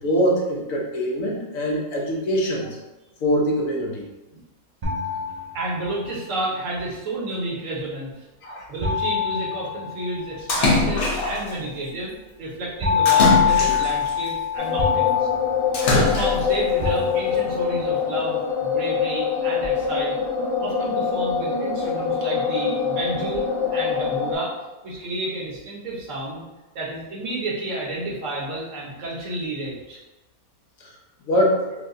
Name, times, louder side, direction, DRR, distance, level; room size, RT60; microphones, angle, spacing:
voice 1, 0.0-2.7 3.2-4.0 8.4-8.6 31.3-31.6, equal, 70° left, -2 dB, 1.1 m, -23 dB
sound 1, 4.8-6.0 8.8-10.4 12.8-16.4 16.8-17.7, left 7 dB, 50° right, 0.5 m, -24 dB
voice 2, 5.5-8.3 8.7-12.1 12.4-15.3 15.9-20.1 20.6-24.5 24.8-26.4 26.7-30.0, right 2 dB, 65° right, -4 dB, 1.2 m, -31 dB
Splash splatter, 10.5-11.5 13.1-14.1 15.7-16.6, left 3 dB, 50° left, 0.8 m, -21 dB
sound 2, 14.6-24.3, left 6 dB, 5° left, 0.5 m, -24 dB
4.7 x 2.2 x 2.6 m, 1.1 s
omnidirectional pair, 1.5 m